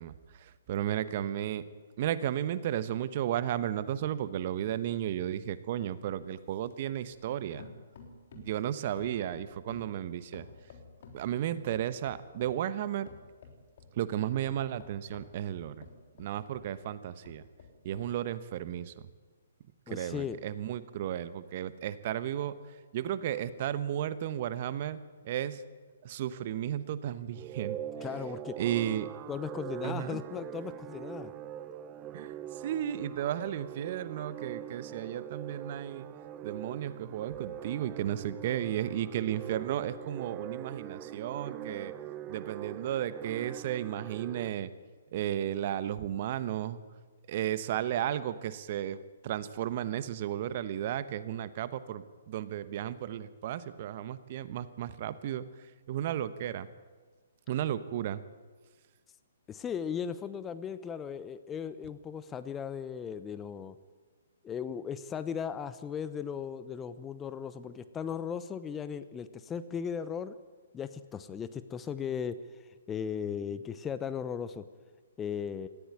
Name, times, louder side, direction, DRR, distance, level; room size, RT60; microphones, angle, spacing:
voice 1, 0.0-1.6 2.0-7.7 8.3-10.5 11.1-13.1 14.0-15.9 16.2-17.4 17.8-18.9 19.9-22.6 22.9-25.0 25.2-25.6 26.0-27.8 28.6-29.1 29.8-30.2 32.1-32.3 32.6-36.1 36.4-41.9 42.3-44.7 45.1-46.8 47.3-55.4 55.9-56.7 57.5-58.2, right 11 dB, 45° right, 14 dB, 1.1 m, -34 dB
sound 1, 4.0-7.3 7.6-8.6 9.0-11.3 11.7-12.6 13.1-14.0 14.5-16.8 17.2-18.2 18.7-18.8, left 4 dB, 55° left, 3.6 m, -53 dB
voice 2, 19.9-20.4 28.0-28.6 29.3-31.3 59.5-63.8 64.4-70.4 70.7-74.6 75.2-75.7, left 7 dB, 15° left, 13 dB, 0.9 m, -37 dB
sound 2, 27.3-44.5, right 10 dB, 25° right, 0.9 m, -43 dB
18.5 x 15.0 x 9.3 m, 1.4 s
figure-of-eight pair, 130°, 0 cm